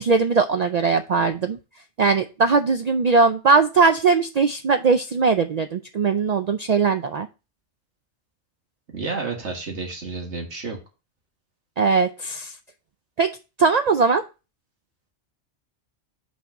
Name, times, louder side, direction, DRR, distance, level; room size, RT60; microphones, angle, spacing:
voice 1, 0.0-1.6 2.0-7.3 11.8-12.5 13.2-13.3 13.6-14.2, right 4 dB, 60° right, 8 dB, 0.4 m, -20 dB
voice 2, 8.9-10.8, right 4 dB, 80° right, 1 dB, 2.0 m, -30 dB
5.8 x 4.3 x 5.1 m, 0.30 s
omnidirectional pair, 1.2 m